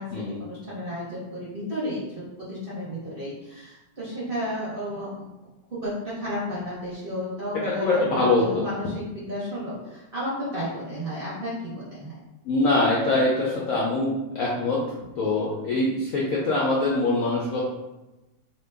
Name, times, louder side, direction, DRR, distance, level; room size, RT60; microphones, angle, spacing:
voice 1, 0.4-5.3 5.7-12.1, equal, 40° right, -8 dB, 0.8 m, -32 dB
voice 2, 7.6-8.6 12.5-14.8 15.2-17.7, left 2 dB, 70° left, -4 dB, 0.8 m, -23 dB
2.9 x 2.2 x 3.3 m, 1.0 s
omnidirectional pair, 1.9 m